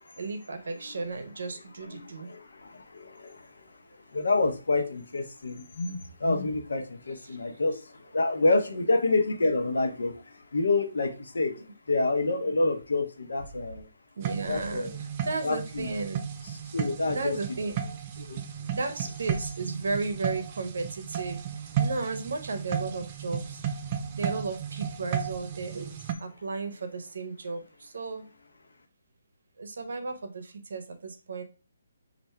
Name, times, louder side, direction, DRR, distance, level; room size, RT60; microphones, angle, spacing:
voice 1, 0.2-2.3 7.2-7.4 14.2-14.9 15.2-16.2 17.1-17.7 18.7-21.4 21.8-23.6 24.1-28.2 29.6-31.4, right 3 dB, 60° right, 7 dB, 0.7 m, -34 dB
voice 2, 1.8-3.5 4.1-13.9 14.3-15.0 15.4-15.9 16.7-17.4 18.2-18.4, left 2 dB, 85° left, 5 dB, 0.8 m, -28 dB
sound 1, 14.2-26.1, right 8 dB, 20° right, 0.3 m, -34 dB
3.3 x 2.5 x 4.4 m, 0.35 s
hypercardioid pair, 175°, 0 cm